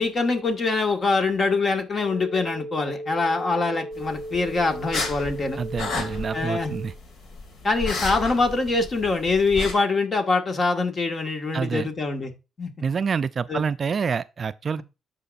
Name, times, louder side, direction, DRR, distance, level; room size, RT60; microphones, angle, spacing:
voice 1, 0.0-5.6 6.3-6.7 7.6-12.3 12.6-12.7 13.5-13.6, left 3 dB, 40° left, 1.7 m, -24 dB
sound 1, 2.0-7.0, right 1 dB, 10° left, 1.0 m, -36 dB
sound 2, 3.9-9.7, left 3 dB, 65° left, 2.2 m, -33 dB
voice 2, 5.6-6.9 11.5-11.9 12.8-14.8, right 6 dB, 45° right, 0.3 m, -27 dB
13.0 x 4.8 x 2.5 m
cardioid pair, 90°, 0 cm